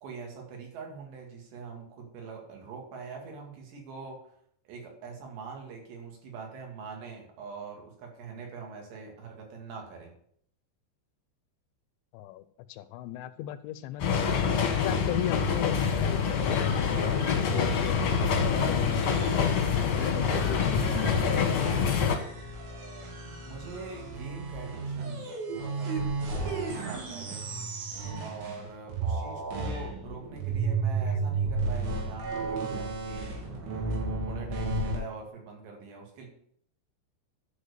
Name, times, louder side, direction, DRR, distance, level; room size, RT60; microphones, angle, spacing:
voice 1, 0.0-4.4 4.7-10.1 23.4-26.0 26.3-27.4 28.2-33.4 34.3-36.3, right 5 dB, 70° right, 1 dB, 4.2 m, -43 dB
voice 2, 12.7-14.2 14.8-18.2 18.6-19.2 19.8-21.5, left 13 dB, 85° left, 13 dB, 2.8 m, -37 dB
sound 1, 14.0-22.2, left 6 dB, 60° left, 1.6 m, -26 dB
sound 2, 16.4-28.7 28.9-35.0, right 3 dB, 90° right, 4.7 m, -34 dB
11.5 x 4.6 x 6.9 m, 0.65 s
omnidirectional pair, 5.2 m